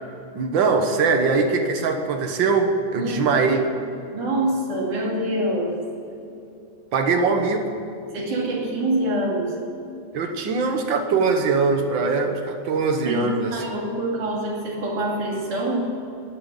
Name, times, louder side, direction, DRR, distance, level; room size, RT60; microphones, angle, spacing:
voice 1, 0.3-3.6 6.9-7.6 10.1-13.6, right 4 dB, 55° right, 5 dB, 1.3 m, -21 dB
voice 2, 2.9-3.3 4.1-5.8 8.1-9.5 13.1-15.9, right 1 dB, 70° right, -4 dB, 4.2 m, -25 dB
11.0 x 9.6 x 9.9 m, 2.9 s
omnidirectional pair, 3.6 m